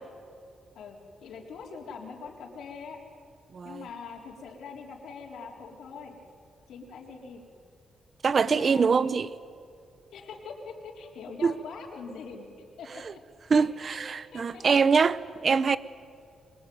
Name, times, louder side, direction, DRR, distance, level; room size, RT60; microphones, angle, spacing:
voice 1, 0.7-3.0 3.6-6.2 6.7-7.4 8.4-9.2 10.1-12.5 12.8-13.2 13.5-14.0 14.3-15.1, left 5 dB, 75° left, 3.9 m, -43 dB
voice 2, 3.5-3.8 8.2-9.3 11.4-11.5 13.5-15.8, right 5 dB, 35° right, 0.8 m, -24 dB
27.0 x 23.0 x 9.5 m
wide cardioid pair, 175°, 0 cm